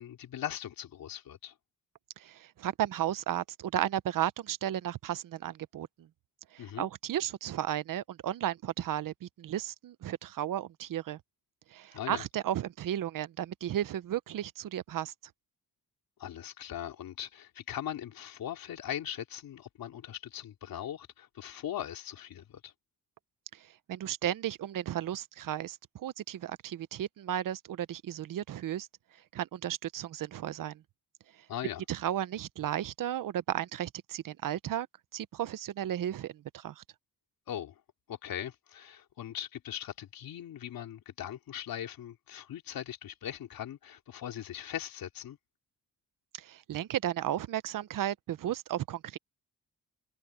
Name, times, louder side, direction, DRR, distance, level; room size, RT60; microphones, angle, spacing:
voice 1, 0.0-1.5 6.6-6.9 11.9-12.2 16.2-22.7 31.5-31.8 37.5-37.7 38.1-45.4, left 10 dB, 90° left, 3.6 m, -40 dB
voice 2, 2.2-6.1 6.5-11.2 11.7-15.1 23.5-23.6 23.9-28.9 29.3-30.8 31.9-34.9 35.1-36.8 46.3-49.2, right 11 dB, 70° right, 0.9 m, -34 dB
wide cardioid pair, 130°, 34 cm